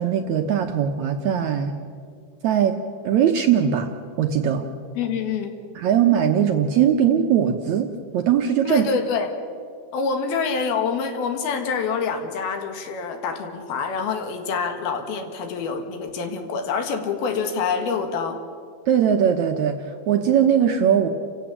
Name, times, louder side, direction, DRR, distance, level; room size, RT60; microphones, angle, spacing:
voice 1, 0.0-1.7 2.4-2.8 3.0-3.9 4.2-4.6 5.8-8.9 18.9-21.1, right 9 dB, 70° right, 5 dB, 1.8 m, -20 dB
voice 2, 5.0-5.6 8.7-9.3 9.9-18.4, left 5 dB, 85° left, 5 dB, 3.8 m, -26 dB
29.5 x 16.0 x 7.3 m, 2.3 s
omnidirectional pair, 4.3 m